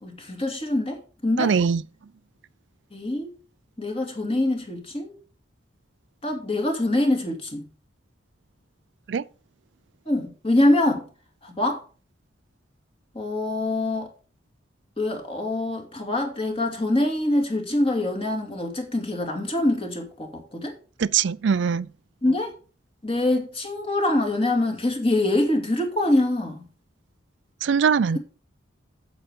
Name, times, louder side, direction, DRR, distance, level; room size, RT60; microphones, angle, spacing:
voice 1, 0.0-1.5 2.9-3.3 3.8-5.1 6.2-7.7 10.1-11.1 11.4-11.8 13.1-14.1 15.0-20.8 22.2-22.5 23.0-26.7, left 1 dB, 30° left, 2.4 m, -24 dB
voice 2, 1.4-1.8 9.1-9.2 21.0-21.9 27.6-28.2, right 6 dB, 70° right, 0.4 m, -21 dB
8.8 x 7.8 x 5.1 m
head